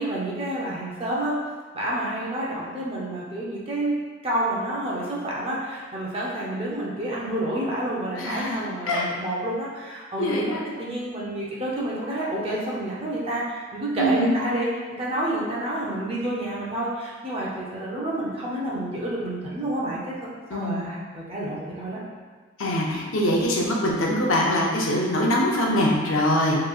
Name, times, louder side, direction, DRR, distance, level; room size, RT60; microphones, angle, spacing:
voice 1, 0.0-1.3 1.7-4.0 4.2-22.0, right 1 dB, 30° right, -5 dB, 0.7 m, -29 dB
voice 2, 8.2-9.1 10.2-10.6 14.0-14.3 20.5-20.9 22.6-26.6, equal, 80° left, -1 dB, 0.7 m, -23 dB
4.6 x 3.1 x 2.4 m, 1.5 s
head